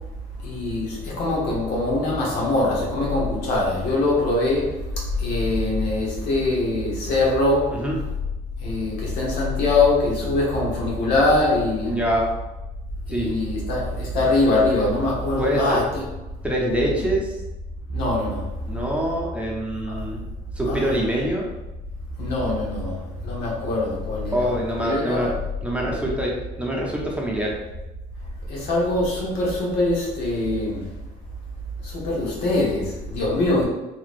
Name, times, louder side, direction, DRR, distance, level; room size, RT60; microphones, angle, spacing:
voice 1, 0.4-4.8 5.2-7.8 8.6-11.9 13.1-16.0 16.9-17.1 17.9-18.4 19.9-20.0 20.7-20.9 22.2-23.0 23.2-24.5 24.8-25.3 28.5-30.8 31.8-33.6, left 2 dB, 85° left, -4 dB, 1.1 m, -23 dB
voice 2, 11.8-12.2 13.1-13.3 15.4-15.8 16.4-17.3 18.7-20.2 20.6-21.5 24.3-25.3 25.6-27.5, right 1 dB, 5° right, -3 dB, 0.7 m, -25 dB
3.0 x 2.9 x 2.5 m, 1.0 s
cardioid pair, 110°, 17 cm